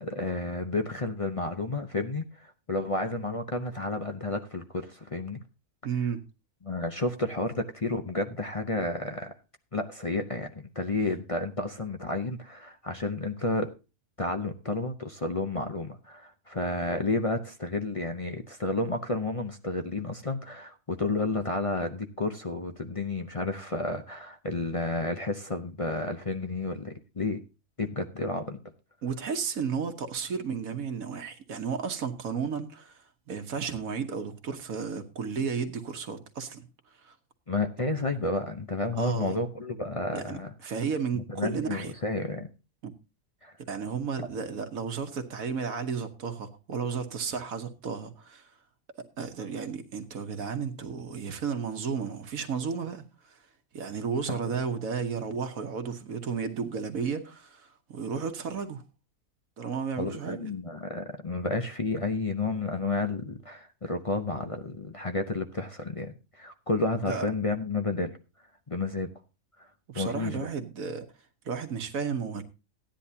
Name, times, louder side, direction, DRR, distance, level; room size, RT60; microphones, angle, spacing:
voice 1, 0.0-5.4 6.6-9.3 9.7-13.7 14.2-27.4 27.8-28.6 37.5-40.5 41.1-42.5 43.4-43.5 54.3-54.4 60.0-68.2 68.7-69.1 69.6-69.7 69.9-70.5, left 2 dB, 35° left, 0.6 m, -31 dB
voice 2, 5.8-6.2 29.0-36.6 37.0-37.1 39.0-39.4 40.1-41.9 42.8-42.9 43.7-48.5 49.2-53.4 53.7-58.8 59.6-60.5 67.1-67.3 69.9-71.1 71.4-72.4, right 6 dB, 65° right, 1.5 m, -33 dB
15.5 x 10.0 x 2.8 m
omnidirectional pair, 1.6 m